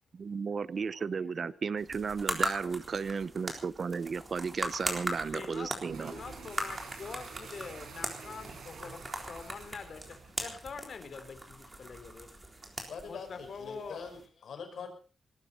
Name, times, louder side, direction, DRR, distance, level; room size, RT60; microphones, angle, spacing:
voice 1, 0.1-6.1, right 5 dB, 40° right, 0.8 m, -34 dB
voice 2, 0.8-1.6 5.3-12.3 13.0-14.1 14.8-14.9, left 5 dB, 50° left, 3.3 m, -45 dB
sound 1, 1.8-14.3, right 1 dB, 15° right, 3.9 m, -40 dB
sound 2, 5.7-10.8, right 5 dB, 70° right, 6.2 m, -48 dB
voice 3, 12.9-14.9, left 5 dB, 65° left, 5.7 m, -43 dB
20.0 x 17.0 x 4.2 m
wide cardioid pair, 160°, 0 cm